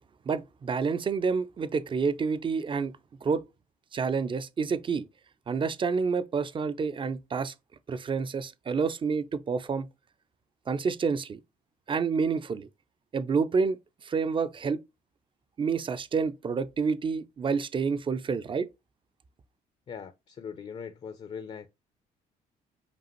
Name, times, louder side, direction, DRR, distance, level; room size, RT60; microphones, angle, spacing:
voice 1, 0.3-2.9 3.2-3.4 3.9-5.0 5.5-7.5 7.9-9.9 10.7-11.4 11.9-12.7 13.1-13.8 14.0-14.8 15.6-18.7, right 5 dB, 30° right, 0.4 m, -28 dB
voice 2, 19.9-21.7, left 6 dB, 40° left, 0.5 m, -40 dB
5.2 x 2.4 x 3.0 m
supercardioid pair, 75°, 17 cm